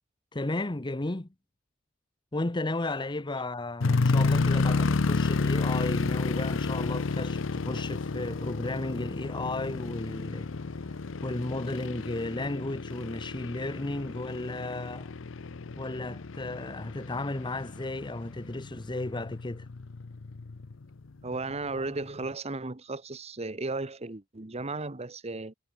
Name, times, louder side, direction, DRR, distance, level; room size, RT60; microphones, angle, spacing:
voice 1, 0.3-1.3 2.3-10.5 11.2-15.1 15.8-19.7, left 2 dB, 25° left, 0.9 m, -34 dB
sound 1, 3.8-20.8 21.4-21.5 22.1-22.3, left 3 dB, 75° left, 0.7 m, -31 dB
voice 2, 21.2-25.5, right 3 dB, 30° right, 1.2 m, -35 dB
head